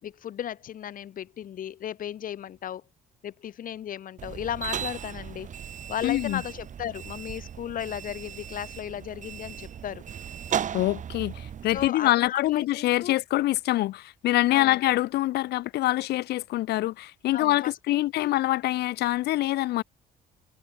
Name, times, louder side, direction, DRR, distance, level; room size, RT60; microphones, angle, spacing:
voice 1, 0.0-2.8 3.2-5.5 5.9-10.0 11.7-13.2 14.5-14.8 17.3-18.3, left 10 dB, 55° left, 3.9 m, -35 dB
sound 1, 4.2-11.9, right 8 dB, 45° right, 6.2 m, -36 dB
voice 2, 6.0-6.4 10.7-19.8, left 16 dB, 75° left, 1.2 m, -25 dB
cardioid pair, 110°, 17 cm